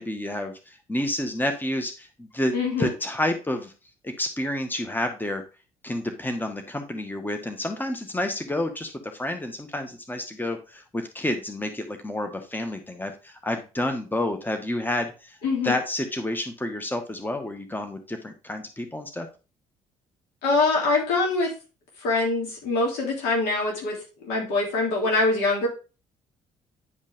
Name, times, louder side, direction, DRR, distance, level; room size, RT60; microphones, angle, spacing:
voice 1, 0.0-3.7 4.0-5.4 5.8-15.4 15.6-19.3, left 1 dB, 10° left, 5 dB, 1.5 m, -29 dB
voice 2, 2.5-2.9 15.4-15.7 20.4-21.5 22.0-24.0 24.2-25.7, left 3 dB, 70° left, -2 dB, 3.1 m, -24 dB
9.9 x 5.2 x 3.6 m, 0.33 s
hypercardioid pair, 50°, 17 cm